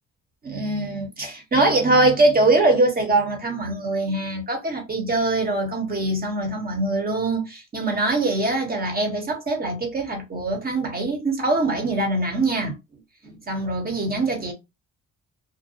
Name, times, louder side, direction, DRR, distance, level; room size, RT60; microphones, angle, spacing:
voice 1, 0.4-12.8 13.2-14.5, right 2 dB, 30° right, 1.1 m, -23 dB
2.7 x 2.1 x 2.6 m
cardioid pair, 90°, 30 cm